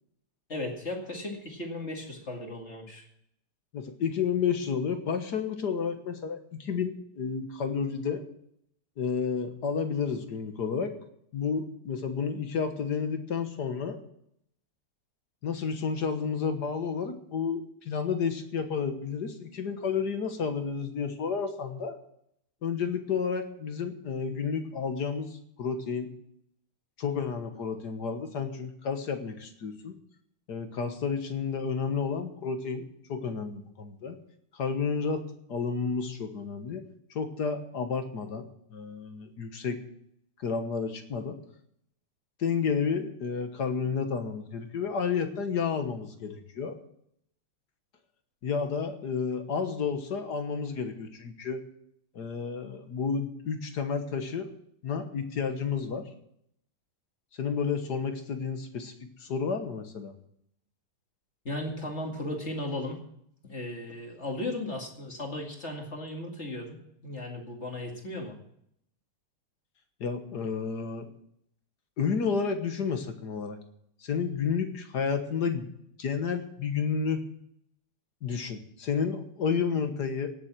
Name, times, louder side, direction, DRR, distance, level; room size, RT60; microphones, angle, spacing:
voice 1, 0.5-3.1 61.4-63.0 63.4-66.8 67.0-68.4, left 1 dB, 30° left, 1 dB, 2.5 m, -36 dB
voice 2, 3.7-8.2 9.0-10.9 11.3-14.0 15.4-22.0 22.6-26.1 27.0-30.0 30.5-32.8 33.1-34.2 34.5-35.2 35.5-36.8 37.1-39.8 40.4-41.4 42.4-46.8 48.4-51.6 52.1-54.5 54.8-56.1 57.4-58.9 59.2-60.1 70.0-71.1 72.0-73.6 74.0-75.7 76.0-77.2 78.2-80.3, left 6 dB, 50° left, 7 dB, 1.7 m, -31 dB
17.5 x 7.3 x 7.4 m, 0.72 s
omnidirectional pair, 2.4 m